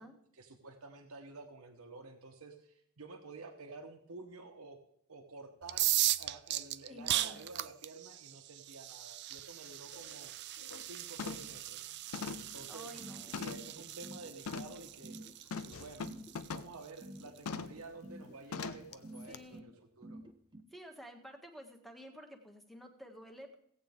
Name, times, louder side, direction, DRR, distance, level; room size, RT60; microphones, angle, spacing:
voice 1, 0.3-4.8 5.1-5.9 6.2-10.3 10.8-11.9 12.4-12.9 13.3-15.2 15.6-16.1 16.5-20.2, right 3 dB, 70° right, 4 dB, 1.2 m, -51 dB
sound 1, 5.6-17.4, right 14 dB, 50° right, 0.4 m, -38 dB
voice 2, 6.9-7.4 12.7-13.5 19.3-19.7 20.7-23.5, equal, ahead, 3 dB, 1.4 m, -51 dB
sound 2, 9.4-9.5 9.9-10.2 10.5-10.9 11.2-11.6 12.1-13.8 14.5-14.8 15.5-16.8 17.5-17.8 18.5-18.9 19.3-19.4, left 5 dB, 65° left, 0.6 m, -42 dB
sound 3, 13.0-20.6, right 1 dB, 20° right, 0.9 m, -50 dB
17.0 x 8.6 x 3.6 m, 0.72 s
head